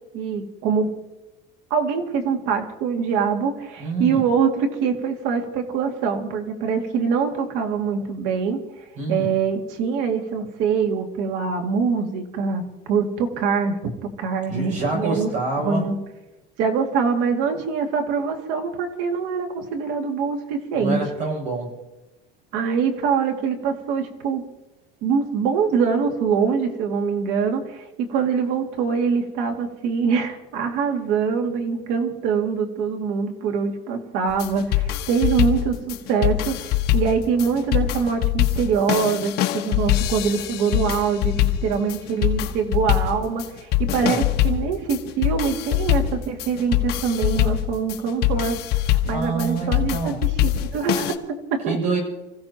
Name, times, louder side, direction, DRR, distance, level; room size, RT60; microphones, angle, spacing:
voice 1, 0.1-0.9 1.7-8.6 9.1-12.6 12.9-15.3 15.6-16.0 16.6-21.0 22.5-24.4 25.0-51.8, right 6 dB, 65° right, 3 dB, 2.4 m, -24 dB
voice 2, 3.8-4.2 9.0-9.3 14.5-15.9 20.7-21.7 44.1-44.3 49.1-50.2 51.7-52.0, right 3 dB, 35° right, 0 dB, 7.6 m, -26 dB
sound 1, 34.3-51.1, left 13 dB, 50° left, 1.3 m, -23 dB
29.5 x 15.5 x 3.0 m, 1.0 s
cardioid pair, 160°, 21 cm